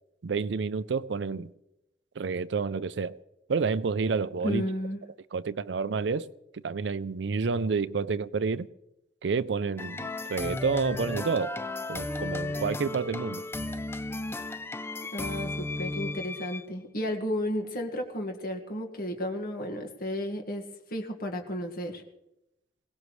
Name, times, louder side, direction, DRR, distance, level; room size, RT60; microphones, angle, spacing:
voice 1, 0.2-1.5 2.2-3.2 3.5-4.6 5.3-6.3 6.5-8.7 9.2-11.6 11.9-13.4, right 5 dB, 80° right, 0.5 m, -29 dB
voice 2, 4.4-5.0 15.1-20.6 20.9-22.0, equal, 55° left, 1.8 m, -33 dB
sound 1, 9.8-16.7, left 2 dB, 15° left, 0.5 m, -34 dB
22.0 x 18.0 x 3.2 m
head